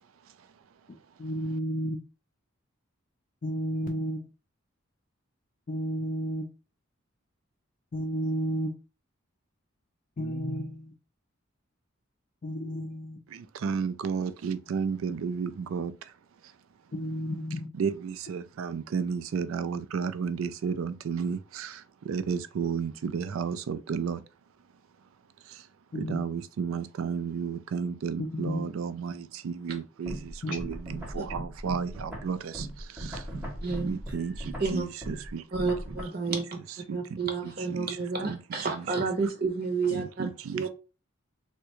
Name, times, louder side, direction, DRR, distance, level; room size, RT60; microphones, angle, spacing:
voice 1, 1.2-2.0 3.4-4.2 5.7-6.4 7.9-8.7 10.2-10.9 12.4-13.2 16.9-17.7 25.9-26.2 28.2-28.6 30.4-30.6, equal, 40° left, 0.4 m, -32 dB
voice 2, 13.3-16.1 16.4-16.5 17.8-24.2 25.4-25.7 25.9-33.4 33.8-35.7 36.3-38.4 38.7-38.9 39.2-39.3 39.9-40.7, right 6 dB, 75° right, 0.3 m, -33 dB
sound 1, 30.1-36.0, right 1 dB, 5° right, 0.7 m, -38 dB
voice 3, 33.6-34.0 34.6-34.8 35.5-36.4 36.9-40.3 40.5-40.7, right 4 dB, 45° right, 0.7 m, -30 dB
3.5 x 2.2 x 2.9 m
head